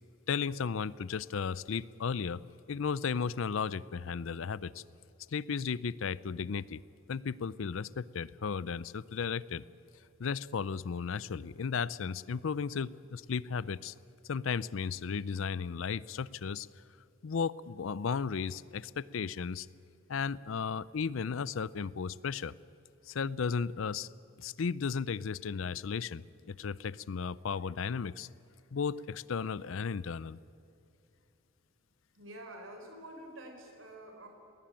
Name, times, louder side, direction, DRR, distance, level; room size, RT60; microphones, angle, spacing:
voice 1, 0.3-2.4 2.7-4.8 5.3-6.8 7.1-9.7 10.2-13.9 14.3-16.7 17.2-19.7 20.1-22.5 23.1-24.1 24.4-28.3 28.7-30.4, left 6 dB, 70° left, 20 dB, 0.5 m, -35 dB
voice 2, 32.1-34.3, right 1 dB, 70° right, 3 dB, 4.3 m, -48 dB
20.5 x 18.5 x 8.8 m, 2.7 s
head